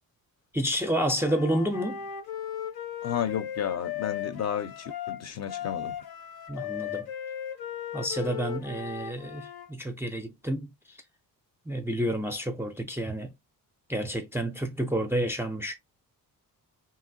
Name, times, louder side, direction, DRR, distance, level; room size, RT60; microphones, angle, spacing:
voice 1, 0.5-2.1 6.5-7.1 7.9-11.0 11.7-13.3 13.9-15.7, right 1 dB, 5° right, 0.4 m, -30 dB
Wind instrument woodwind instrument, 1.2-9.7, left 9 dB, 85° left, 0.8 m, -37 dB
voice 2, 3.0-5.9, left 9 dB, 45° left, 0.5 m, -32 dB
3.0 x 2.8 x 2.5 m
cardioid pair, 130°, 36 cm